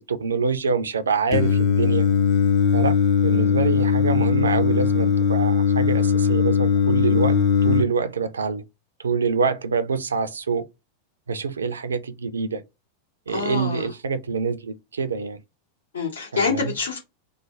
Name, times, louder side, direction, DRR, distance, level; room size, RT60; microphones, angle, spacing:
voice 1, 0.1-2.0 2.7-2.9 3.2-7.3 7.6-8.6 9.0-10.6 11.3-12.6 13.3-15.4 16.3-16.7, right 5 dB, 70° right, 0.4 m, -25 dB
Singing, 1.3-7.8, left 6 dB, 40° left, 0.7 m, -19 dB
voice 2, 13.3-13.9 15.9-17.0, left 5 dB, 70° left, 1.6 m, -26 dB
3.1 x 2.1 x 3.7 m
figure-of-eight pair, 90°, 0 cm